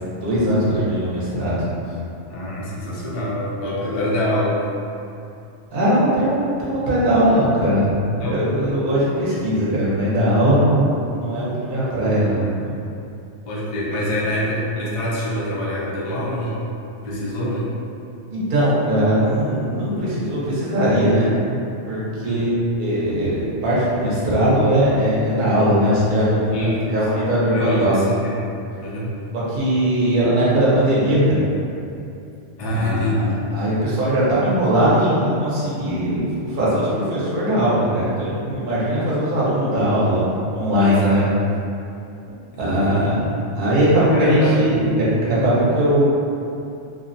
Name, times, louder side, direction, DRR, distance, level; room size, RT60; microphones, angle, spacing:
voice 1, 0.2-1.6 5.7-12.5 18.3-21.3 21.9-22.5 22.8-28.0 29.3-31.4 32.6-33.2 33.5-41.2 42.6-46.0, equal, 50° right, -8 dB, 0.8 m, -19 dB
voice 2, 2.3-4.6 8.2-8.4 13.5-16.7 17.0-17.8 22.2-22.5 26.5-27.0 27.5-28.5 28.8-29.2 32.6-33.5 40.8-41.2 42.5-43.1 44.1-44.8, left 1 dB, 55° left, -7 dB, 0.4 m, -25 dB
2.5 x 2.0 x 2.6 m, 2.6 s
omnidirectional pair, 1.2 m